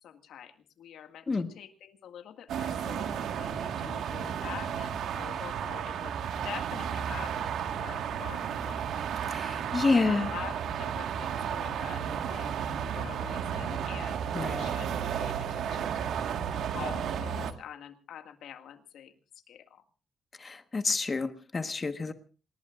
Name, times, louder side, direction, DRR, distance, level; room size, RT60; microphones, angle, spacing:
voice 1, 0.0-6.1 6.4-8.9 9.9-12.5 12.9-16.3 16.7-19.1 19.5-19.8, left 9 dB, 85° left, 7 dB, 1.9 m, -46 dB
sound 1, 2.5-17.5, right 8 dB, 80° right, 1.6 m, -33 dB
voice 2, 9.3-10.3 14.3-14.7 20.4-22.1, left 3 dB, 25° left, 8 dB, 1.3 m, -29 dB
28.0 x 19.0 x 2.5 m, 0.36 s
cardioid pair, 140°, 0 cm